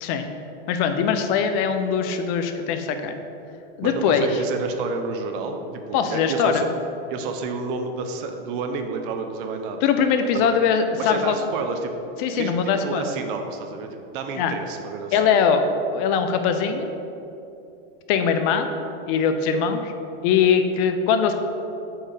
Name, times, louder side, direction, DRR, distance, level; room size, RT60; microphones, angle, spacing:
voice 1, 0.7-3.1 3.8-4.3 5.9-6.6 9.8-11.3 12.2-13.1 14.4-14.5 15.1-15.6 15.9-16.9 18.1-18.7 19.1-19.9 20.2-21.3, left 7 dB, 45° left, 7 dB, 0.5 m, -21 dB
voice 2, 3.8-5.6 5.9-6.7 7.1-9.9 10.3-10.5 11.0-11.9 12.3-13.9 14.1-15.5, right 4 dB, 60° right, 6 dB, 0.7 m, -30 dB
5.0 x 4.5 x 4.8 m, 2.8 s
hypercardioid pair, 120°, 30 cm